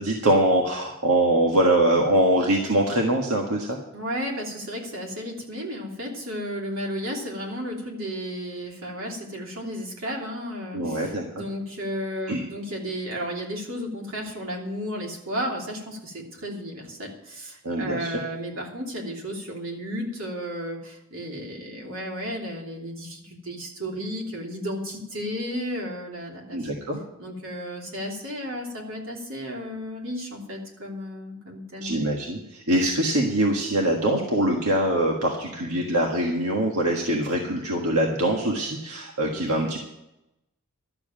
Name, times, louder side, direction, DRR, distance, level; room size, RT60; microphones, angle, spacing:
voice 1, 0.0-3.8 10.7-11.2 12.3-12.4 17.6-18.2 26.5-27.0 31.8-39.8, right 1 dB, 80° right, 0 dB, 1.6 m, -23 dB
voice 2, 3.9-26.7 27.2-32.0, equal, 65° right, 0 dB, 3.0 m, -33 dB
12.5 x 7.1 x 8.9 m, 0.89 s
head